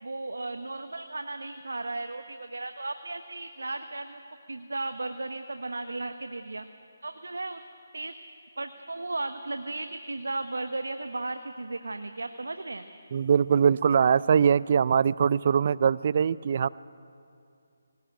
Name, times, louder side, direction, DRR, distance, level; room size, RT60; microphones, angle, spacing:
voice 1, 0.0-4.2 4.5-6.6 7.0-7.6 7.9-8.1 8.6-12.9, right 2 dB, 80° right, 8 dB, 1.0 m, -35 dB
voice 2, 13.1-16.7, right 7 dB, 45° right, 20 dB, 0.4 m, -22 dB
19.5 x 18.5 x 9.2 m, 2.5 s
figure-of-eight pair, 155°, 0 cm